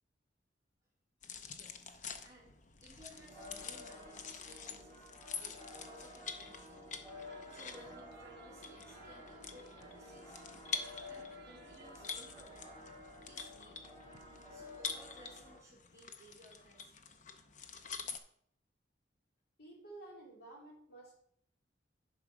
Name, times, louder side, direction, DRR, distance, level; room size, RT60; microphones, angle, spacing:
sound 1, 1.2-18.2, left 5 dB, 40° left, 0.7 m, -47 dB
voice 1, 1.5-2.0 2.2-7.0 7.5-10.4 11.1-12.8 13.2-13.9 14.5-16.9, equal, 15° right, -5 dB, 3.1 m, -60 dB
sound 2, 3.2-15.6, left 1 dB, 20° left, 3.3 m, -53 dB
sound 3, 7.1-12.6, right 2 dB, 60° right, 1.3 m, -59 dB
voice 2, 19.6-21.2, right 2 dB, 60° left, -3 dB, 3.3 m, -52 dB
10.5 x 4.8 x 5.9 m, 0.67 s
head